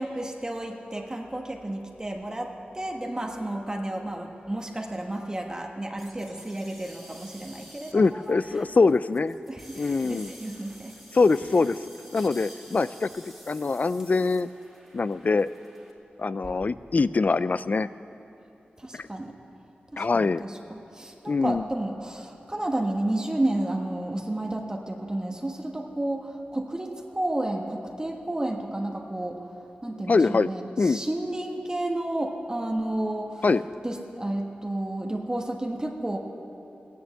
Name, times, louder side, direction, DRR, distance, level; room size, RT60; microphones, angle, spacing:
voice 1, 0.0-8.7 9.5-10.9 18.8-19.3 19.9-29.5 29.8-33.5 33.8-36.2, right 1 dB, 20° right, 1 dB, 1.4 m, -31 dB
sound 1, 6.0-15.9, equal, ahead, 2.4 m, -50 dB
voice 2, 7.9-9.3 9.8-10.3 11.1-11.8 12.1-14.5 14.9-15.5 16.2-17.9 18.9-19.1 20.0-20.4 21.3-21.6 30.1-30.5 30.8-31.0 33.4-33.6, left 4 dB, 50° left, 15 dB, 0.4 m, -23 dB
16.0 x 10.5 x 7.7 m, 2.8 s
wide cardioid pair, 70°, 3 cm